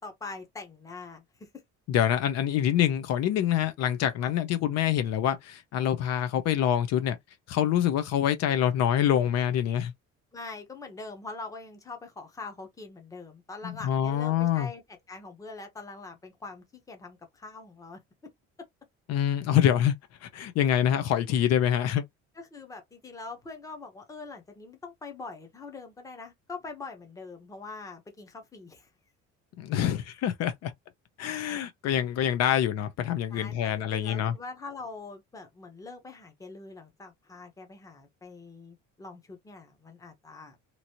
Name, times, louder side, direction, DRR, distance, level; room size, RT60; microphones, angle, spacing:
voice 1, 0.0-1.5 4.2-4.3 10.3-18.3 22.4-28.9 31.5-31.6 33.3-40.6, left 3 dB, 10° left, 0.7 m, -43 dB
voice 2, 1.9-7.2 7.5-9.9 13.6-14.7 19.1-19.9 20.2-22.0 29.6-30.7 31.2-34.3, left 10 dB, 60° left, 0.6 m, -26 dB
3.0 x 2.6 x 2.8 m
cardioid pair, 165°, 29 cm